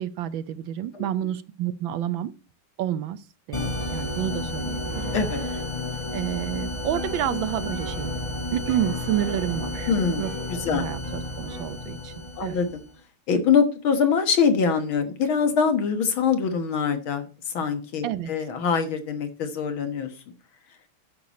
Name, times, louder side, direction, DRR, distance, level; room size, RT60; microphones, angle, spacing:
voice 1, 0.0-2.3 2.8-5.0 6.1-8.1 8.5-9.9 10.2-10.3 10.7-12.1 12.4-12.6 18.0-18.3, right 11 dB, 70° right, 14 dB, 1.4 m, -29 dB
sound 1, 3.5-12.9, left 2 dB, 20° left, 0.9 m, -32 dB
Piano, 4.9-11.8, right 5 dB, 50° right, 1.3 m, -42 dB
voice 2, 9.9-10.2 10.5-10.8 12.4-12.8 13.3-17.3 17.5-20.1, left 6 dB, 70° left, 7 dB, 2.2 m, -23 dB
10.5 x 6.7 x 4.1 m, 0.35 s
omnidirectional pair, 2.3 m